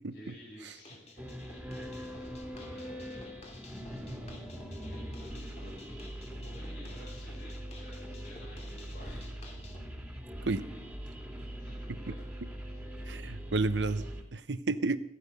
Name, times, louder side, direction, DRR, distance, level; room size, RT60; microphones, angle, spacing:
voice 1, 0.1-1.6 2.5-3.3 4.0-9.6 10.5-11.2 11.6-12.8, left 1 dB, 75° left, -5 dB, 6.0 m, -54 dB
sound 1, 0.7-9.8, left 2 dB, 40° left, 2.9 m, -53 dB
sound 2, 1.2-14.2, equal, 5° right, 2.5 m, -42 dB
voice 2, 13.1-15.0, right 3 dB, 85° right, 14 dB, 0.9 m, -31 dB
17.0 x 14.5 x 5.4 m, 0.73 s
head